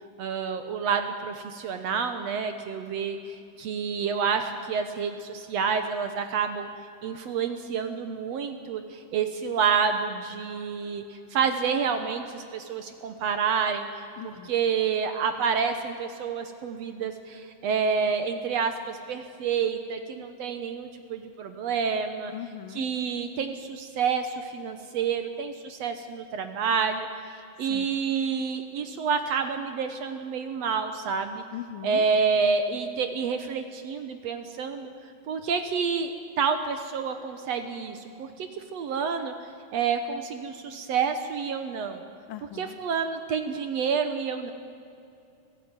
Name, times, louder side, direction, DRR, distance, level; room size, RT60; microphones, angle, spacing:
voice 1, 0.2-6.7 7.0-13.9 14.2-22.3 22.7-27.1 27.6-31.4 31.8-34.9 35.3-39.3 39.7-42.0 42.6-44.5, right 6 dB, 70° right, 8 dB, 1.7 m, -28 dB
voice 2, 14.2-14.5 20.2-20.3 22.3-22.8 27.7-27.9 31.5-32.0 42.3-42.8, left 12 dB, 80° left, 12 dB, 2.5 m, -39 dB
24.5 x 15.5 x 9.0 m, 2.6 s
omnidirectional pair, 4.1 m